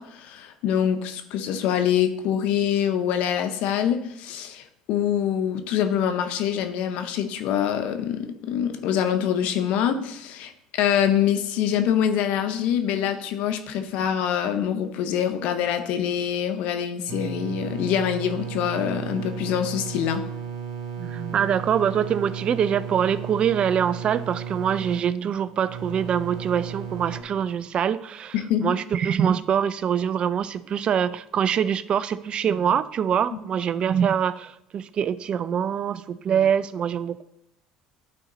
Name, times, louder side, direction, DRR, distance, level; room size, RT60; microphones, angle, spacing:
voice 1, 0.0-20.2 28.3-28.7, left 9 dB, 70° left, 8 dB, 0.8 m, -25 dB
sound 1, 17.1-27.2, right 7 dB, 75° right, 1.7 m, -34 dB
voice 2, 21.0-28.3 28.6-37.2, right 8 dB, 45° right, 15 dB, 0.4 m, -24 dB
9.8 x 4.2 x 3.9 m, 0.77 s
hypercardioid pair, 75°, 2 cm